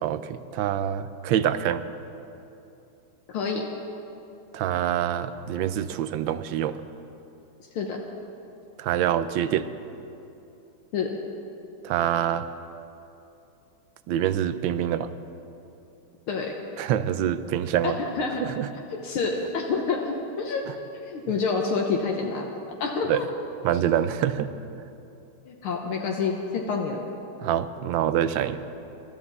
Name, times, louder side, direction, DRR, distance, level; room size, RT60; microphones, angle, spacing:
voice 1, 0.0-1.8 4.5-6.8 8.8-9.7 11.8-12.5 14.1-15.1 16.8-18.0 18.4-18.7 20.7-20.8 23.1-23.2 23.6-24.5 27.4-28.6, right 10 dB, 75° right, 12 dB, 1.2 m, -25 dB
voice 2, 3.3-3.7 7.7-8.0 10.9-11.1 16.3-16.5 17.8-18.4 18.9-20.6 20.9-22.5 22.8-23.3 25.5-27.0, left 4 dB, 80° left, 0 dB, 1.9 m, -28 dB
23.5 x 13.0 x 4.1 m, 2.8 s
omnidirectional pair, 2.3 m